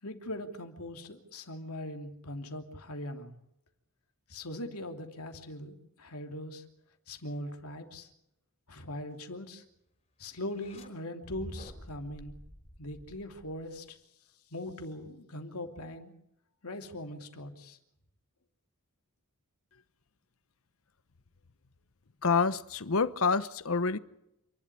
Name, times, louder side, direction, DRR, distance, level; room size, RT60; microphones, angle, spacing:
voice 1, 0.0-3.3 4.3-6.6 7.1-8.1 8.7-9.6 10.2-12.3 12.8-14.0 14.5-16.1 16.6-17.8, left 1 dB, 85° left, 2.9 m, -41 dB
sound 1, 10.4-10.9 11.2-13.8, equal, 30° left, 3.8 m, -48 dB
voice 2, 22.2-24.0, left 4 dB, 70° left, 0.9 m, -27 dB
28.0 x 12.0 x 10.0 m
head